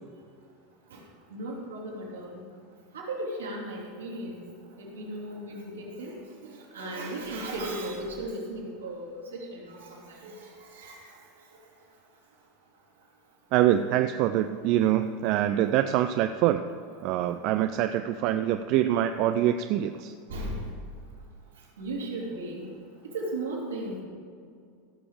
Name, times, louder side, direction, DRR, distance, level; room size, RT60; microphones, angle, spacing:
voice 1, 1.3-2.4 2.9-4.4 4.8-6.2 6.7-11.0 18.9-19.0 20.3-20.6 21.8-22.7 23.1-24.0, right 1 dB, 85° right, -4 dB, 3.2 m, -36 dB
voice 2, 13.5-16.6 17.0-20.1, right 12 dB, 55° right, 8 dB, 0.4 m, -25 dB
16.0 x 6.9 x 5.1 m, 2.4 s
hypercardioid pair, 85°, 0 cm